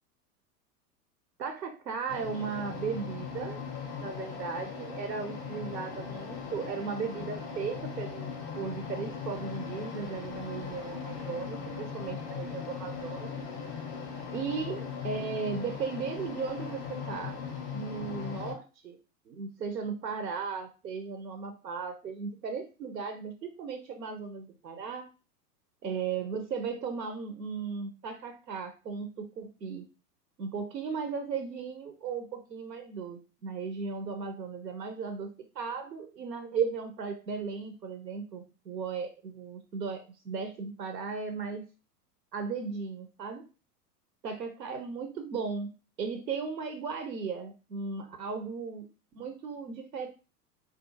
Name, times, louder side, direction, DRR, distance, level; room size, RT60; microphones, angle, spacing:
voice 1, 1.4-3.6 4.0-13.3 14.3-17.4 17.7-19.0 19.3-25.1 25.8-29.9 30.4-41.6 42.3-43.4 44.2-45.7 46.0-48.9 49.1-50.1, right 5 dB, 90° right, 6 dB, 0.5 m, -36 dB
sound 1, 2.1-18.5, left 6 dB, 25° left, 0.5 m, -39 dB
2.4 x 2.3 x 2.5 m, 0.32 s
figure-of-eight pair, 95°, 48 cm